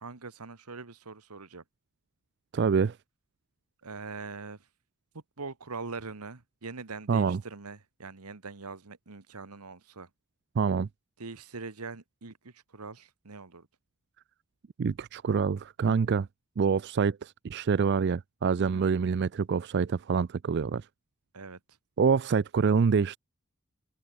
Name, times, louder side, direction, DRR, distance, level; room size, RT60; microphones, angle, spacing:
voice 1, 0.0-1.6 3.8-4.7 5.1-10.1 11.2-13.7 18.6-18.9 21.3-21.6, right 4 dB, 85° right, 1.4 m, -42 dB
voice 2, 2.5-3.0 7.1-7.4 10.6-10.9 14.8-16.3 16.6-20.9 22.0-23.2, right 5 dB, 50° right, 0.4 m, -26 dB
open air
head